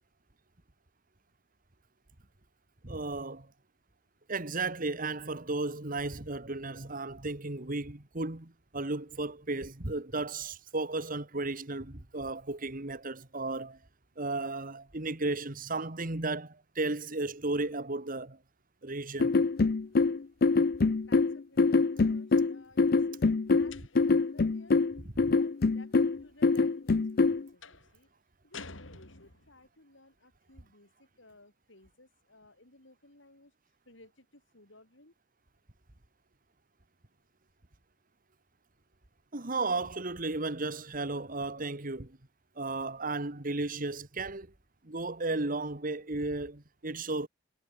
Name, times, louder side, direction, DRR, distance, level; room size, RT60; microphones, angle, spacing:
voice 1, 2.8-3.5 4.3-13.8 14.2-18.4 18.8-19.3 25.2-25.4 39.3-42.2 42.6-44.5 44.8-47.3, right 2 dB, 45° right, 2.0 m, -34 dB
sound 1, 19.2-27.4, left 3 dB, 50° left, 0.5 m, -25 dB
voice 2, 21.1-24.8 25.3-25.9 26.2-28.1 28.4-33.5 33.9-35.1, left 2 dB, 75° left, 7.4 m, -58 dB
sound 2, 23.7-24.3 27.6-27.9 28.5-29.6, left 4 dB, 90° left, 5.8 m, -48 dB
head